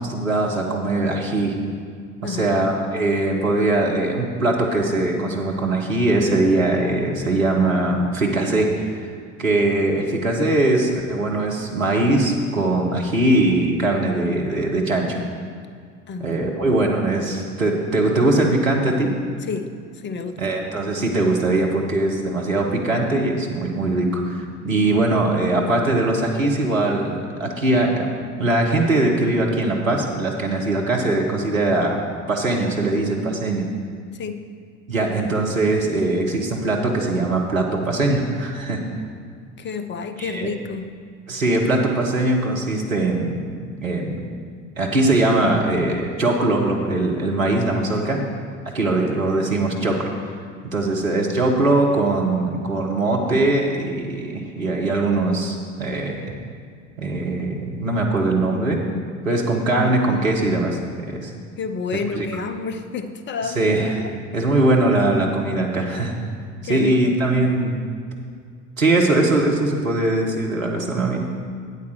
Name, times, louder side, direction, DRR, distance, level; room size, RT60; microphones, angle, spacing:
voice 1, 0.0-1.5 2.2-9.1 9.4-15.2 16.2-19.1 20.4-28.1 28.4-32.0 32.3-33.6 34.9-38.8 40.2-40.5 41.3-43.5 43.8-44.2 44.8-48.2 48.7-50.1 50.6-56.3 57.0-58.8 59.2-61.3 62.2-62.3 63.4-64.1 64.3-66.1 66.6-67.7 68.8-71.2, right 2 dB, 85° right, 0 dB, 1.1 m, -21 dB
voice 2, 2.2-2.5 16.1-16.6 19.5-20.4 34.1-34.4 39.6-40.9 48.0-48.2 61.6-63.7 64.0-64.1 66.6-67.2, left 5 dB, 30° left, 9 dB, 0.7 m, -30 dB
8.5 x 7.9 x 4.7 m, 2.2 s
figure-of-eight pair, 60°, 39 cm